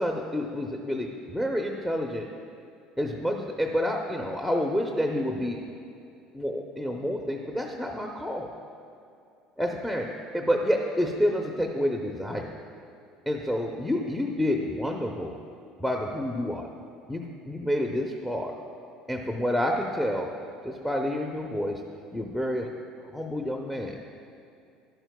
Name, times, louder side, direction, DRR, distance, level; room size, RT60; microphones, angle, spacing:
voice 1, 0.0-2.2 3.0-5.6 6.3-8.5 9.6-10.1 10.3-12.5 13.3-15.4 15.8-16.7 17.1-18.5 19.1-20.3 20.6-21.8 22.1-22.7 23.0-23.9, equal, 10° left, 1 dB, 0.7 m, -28 dB
11.0 x 8.9 x 2.3 m, 2.6 s
hypercardioid pair, 70°, 0 cm